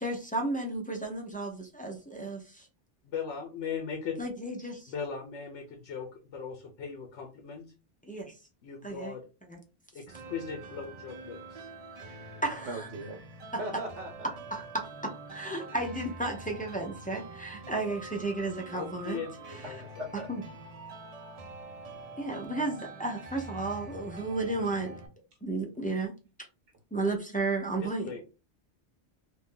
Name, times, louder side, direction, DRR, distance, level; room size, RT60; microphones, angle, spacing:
voice 1, 0.0-2.7 4.2-4.9 8.0-8.4 8.8-9.1 9.5-9.6 12.4-12.9 14.5-19.2 20.3-20.4 22.2-24.9 25.4-26.1 26.9-28.2, right 2 dB, 10° left, 0 dB, 0.4 m, -33 dB
voice 2, 3.0-4.2 4.9-7.7 8.6-9.3 9.9-11.7 18.7-19.8 27.8-28.2, left 6 dB, 85° left, 3 dB, 1.0 m, -39 dB
sound 1, 10.1-25.1, right 2 dB, 45° right, 0.5 m, -46 dB
voice 3, 12.6-13.2 13.6-14.3 19.6-20.3, right 1 dB, 80° right, 3 dB, 1.0 m, -38 dB
2.7 x 2.5 x 3.7 m, 0.32 s
omnidirectional pair, 1.2 m